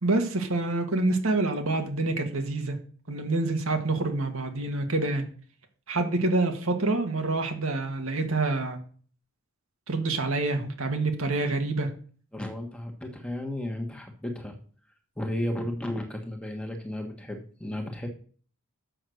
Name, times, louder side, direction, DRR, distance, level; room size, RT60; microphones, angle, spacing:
voice 1, 0.0-2.8 3.1-5.2 5.9-8.8 9.9-11.9, right 2 dB, 70° right, 5 dB, 1.7 m, -27 dB
voice 2, 12.3-14.6 15.2-18.1, left 1 dB, 5° left, 2 dB, 1.3 m, -33 dB
7.7 x 6.3 x 6.3 m, 0.44 s
head